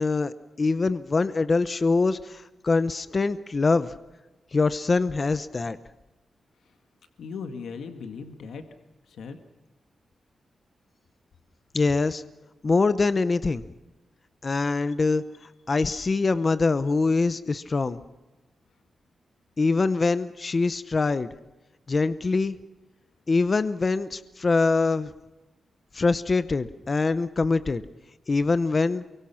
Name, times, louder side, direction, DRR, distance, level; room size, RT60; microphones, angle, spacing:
voice 1, 0.0-3.9 4.5-5.8 11.7-12.2 12.6-13.6 14.4-15.2 15.7-18.0 19.6-21.3 21.9-22.6 23.3-25.1 25.9-27.8 28.3-29.0, left 3 dB, 30° left, 13 dB, 0.7 m, -24 dB
voice 2, 7.2-8.6 9.1-9.4 15.9-16.2, left 5 dB, 85° left, 6 dB, 1.9 m, -38 dB
28.5 x 24.0 x 5.8 m, 1.1 s
wide cardioid pair, 175°, 0 cm